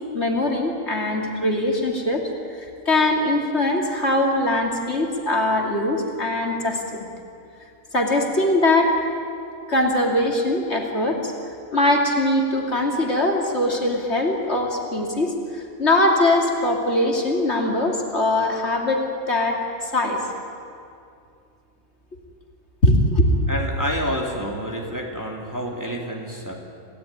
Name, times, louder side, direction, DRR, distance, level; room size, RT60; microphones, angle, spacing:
voice 1, 0.1-2.3 2.6-7.1 7.9-8.9 9.7-11.3 11.7-20.2 22.8-23.3, left 1 dB, 50° left, 1 dB, 3.0 m, -21 dB
voice 2, 23.5-26.5, equal, 10° right, -1 dB, 3.2 m, -28 dB
28.0 x 17.0 x 10.0 m, 2.5 s
omnidirectional pair, 1.5 m